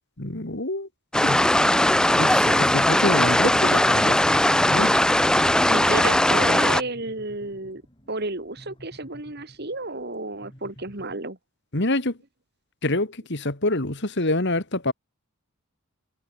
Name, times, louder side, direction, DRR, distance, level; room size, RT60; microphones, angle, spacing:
voice 1, 0.2-0.9 1.2-1.4 2.1-4.9 11.7-12.1 12.8-14.9, left 2 dB, 50° left, 2.4 m, -26 dB
sound 1, 1.1-6.8, left 1 dB, 5° left, 0.5 m, -19 dB
voice 2, 5.7-7.8 8.1-11.4, right 2 dB, 45° right, 2.5 m, -32 dB
sound 2, 6.5-11.2, equal, 20° left, 6.5 m, -51 dB
head